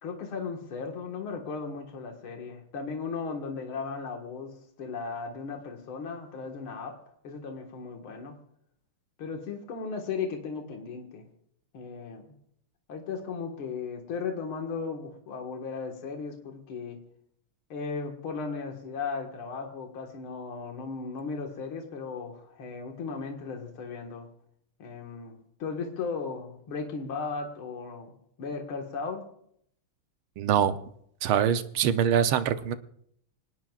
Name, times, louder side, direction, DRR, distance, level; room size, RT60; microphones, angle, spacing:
voice 1, 0.0-6.9 7.2-8.4 9.2-11.3 11.7-12.3 12.9-17.0 17.7-24.3 24.8-29.2, left 5 dB, 75° left, 2 dB, 2.5 m, -36 dB
voice 2, 30.4-30.8 31.2-32.8, right 9 dB, 80° right, 10 dB, 1.7 m, -24 dB
26.0 x 19.0 x 2.4 m, 0.70 s
omnidirectional pair, 2.4 m